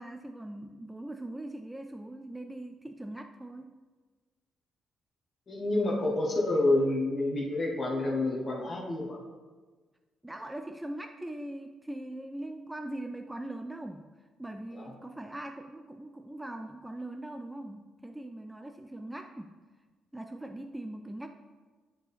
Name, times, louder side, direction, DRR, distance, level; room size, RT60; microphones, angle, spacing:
voice 1, 0.0-3.7 10.2-14.1 14.4-19.6 20.1-21.3, right 1 dB, 10° right, 5 dB, 0.3 m, -41 dB
voice 2, 5.5-9.2 14.7-14.9, left 2 dB, 40° left, -2 dB, 1.2 m, -28 dB
8.9 x 4.4 x 3.5 m, 1.4 s
cardioid pair, 90°, 0 cm